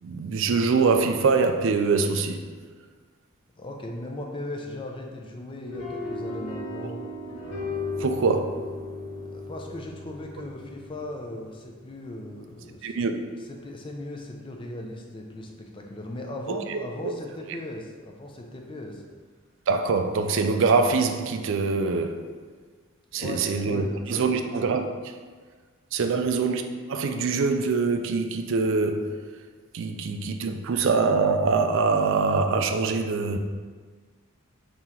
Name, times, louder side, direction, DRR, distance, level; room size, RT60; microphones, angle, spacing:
voice 1, 0.0-2.4 8.0-8.7 12.8-13.1 16.5-17.1 19.7-22.3 23.1-25.1 25.9-26.6 26.9-29.1 29.7-33.4, right 4 dB, 60° right, 6 dB, 0.4 m, -24 dB
voice 2, 3.6-7.0 9.3-13.0 13.5-19.0 23.1-24.4 26.0-26.2, left 1 dB, 25° left, 1 dB, 0.4 m, -38 dB
sound 1, 5.6-11.9, left 2 dB, 90° left, 1.1 m, -36 dB
3.7 x 2.9 x 4.3 m, 1.5 s
head